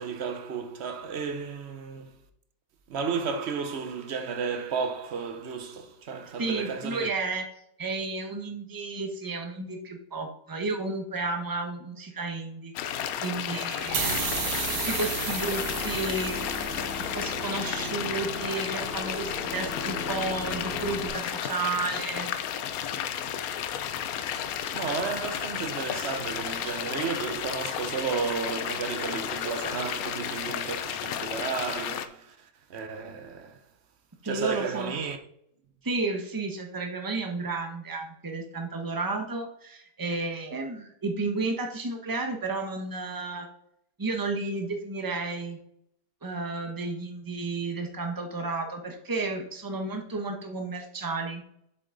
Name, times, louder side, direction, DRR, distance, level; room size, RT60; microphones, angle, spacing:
voice 1, 0.0-2.1 2.9-7.1 24.5-33.6 34.2-35.2, right 5 dB, 50° right, 0.8 m, -33 dB
voice 2, 6.4-7.4 7.8-14.2 14.7-16.4 17.1-22.3 34.2-34.9 35.8-43.5 44.0-45.6 46.2-51.4, right 3 dB, 15° right, 0.9 m, -32 dB
sound 1, 12.8-32.1, left 9 dB, 70° left, 1.0 m, -33 dB
sound 2, 13.8-21.1, left 1 dB, 35° left, 1.8 m, -37 dB
sound 3, 13.9-17.3, right 6 dB, 70° right, 1.6 m, -33 dB
7.6 x 6.1 x 3.9 m
omnidirectional pair, 1.7 m